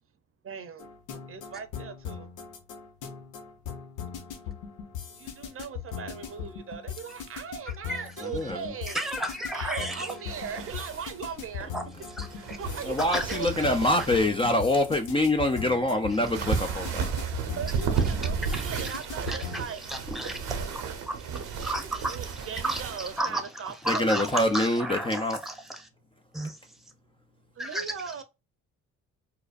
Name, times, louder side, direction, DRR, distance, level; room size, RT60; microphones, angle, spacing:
voice 1, 0.4-0.9 1.3-2.3 5.1-9.0 9.5-11.7 12.3-13.8 17.5-19.8 22.1-24.1 27.6-28.2, right 6 dB, 45° right, 0.7 m, -39 dB
sound 1, 0.8-19.7, left 8 dB, 90° left, 1.0 m, -40 dB
voice 2, 7.7-8.1 8.9-10.1 11.7-11.8 12.1-12.6 13.1-13.7 16.1-16.2 18.0-18.1 18.4-19.0 19.3-25.9 26.3-26.6 27.6-28.1, right 1 dB, ahead, 0.9 m, -34 dB
voice 3, 8.2-8.7 12.9-17.1 20.1-20.2 23.9-25.4, left 1 dB, 20° left, 0.5 m, -25 dB
sound 2, 10.3-23.2, right 6 dB, 85° right, 0.9 m, -33 dB
4.8 x 2.1 x 2.4 m
cardioid pair, 90°, 30 cm